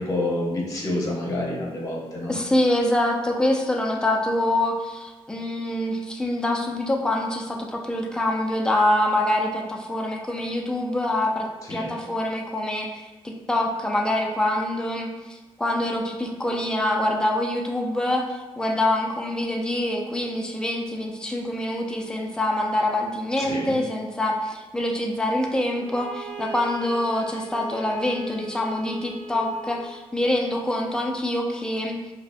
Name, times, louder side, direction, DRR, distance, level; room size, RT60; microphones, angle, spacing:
voice 1, 0.0-2.3 11.7-11.9 23.4-23.8, left 1 dB, 35° left, -3 dB, 0.9 m, -28 dB
voice 2, 2.3-32.0, left 1 dB, 10° left, 0 dB, 0.4 m, -25 dB
Bowed string instrument, 25.7-30.0, right 2 dB, 70° right, 0.9 m, -40 dB
5.0 x 2.1 x 2.6 m, 1.2 s
wide cardioid pair, 120°, 10 cm